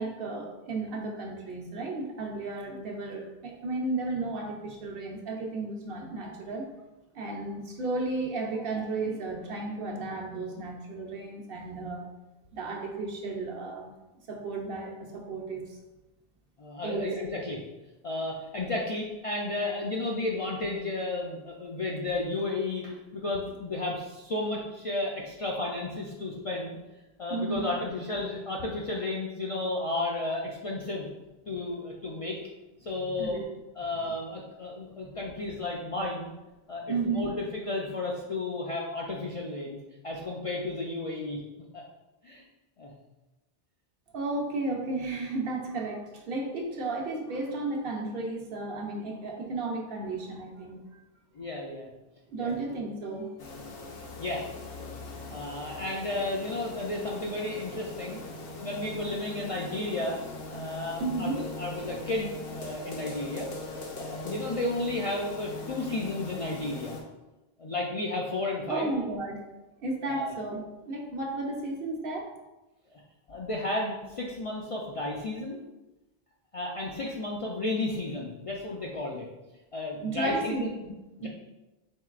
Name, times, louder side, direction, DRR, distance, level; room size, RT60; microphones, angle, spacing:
voice 1, 0.0-6.7 7.1-12.0 12.5-13.9 14.3-15.8 16.8-17.1 18.2-18.3 27.3-27.7 33.1-33.4 34.8-35.1 36.9-37.3 44.1-50.8 52.3-53.3 53.6-53.8 61.0-61.4 68.7-69.4 69.8-72.3 80.0-80.9 81.2-81.3, right 3 dB, 65° right, 1 dB, 0.9 m, -33 dB
voice 2, 16.6-17.6 18.0-26.8 27.2-31.1 31.5-32.4 32.8-33.4 33.8-36.3 36.7-39.8 40.0-41.4 41.7-41.8 42.2-42.4 42.8-43.0 51.3-51.9 52.4-52.5 54.2-54.4 54.8-55.0 55.3-58.2 58.6-63.5 64.0-67.0 67.6-68.9 70.1-70.4 72.9-73.0 73.3-75.6 76.5-79.3 79.7-80.7 81.2-81.3, left 2 dB, 50° left, -3 dB, 0.4 m, -33 dB
sound 1, 53.4-67.0, left 2 dB, 70° left, 0.9 m, -41 dB
4.5 x 3.8 x 2.4 m, 1.1 s
omnidirectional pair, 1.0 m